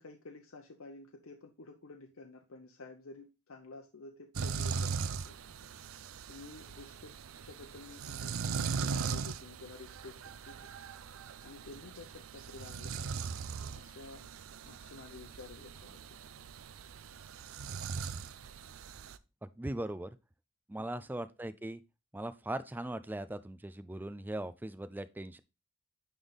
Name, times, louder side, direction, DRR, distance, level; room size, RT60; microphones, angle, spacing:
voice 1, 0.0-5.4 6.3-7.2 7.4-10.6 11.4-13.3 13.7-14.3 14.6-16.0 20.8-20.9, left 3 dB, 70° left, 0.8 m, -51 dB
sound 1, 4.3-19.2, right 5 dB, 70° right, 0.5 m, -40 dB
voice 2, 19.4-20.1 20.7-21.8 22.1-25.4, right 1 dB, 10° right, 0.4 m, -39 dB
9.7 x 3.5 x 4.0 m
head